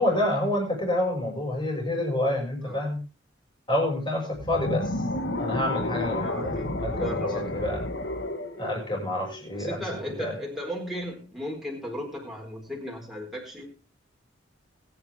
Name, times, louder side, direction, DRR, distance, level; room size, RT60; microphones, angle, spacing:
voice 1, 0.0-3.0 3.7-5.0 5.4-6.5 6.8-7.2 7.5-7.8 8.6-9.8 10.2-10.3, left 1 dB, 25° left, -1 dB, 6.4 m, -28 dB
sound 1, 4.4-9.6, left 2 dB, 65° left, 1.7 m, -31 dB
voice 2, 6.2-7.7 9.5-13.7, equal, ahead, -1 dB, 4.5 m, -36 dB
22.0 x 9.9 x 3.6 m, 0.33 s
head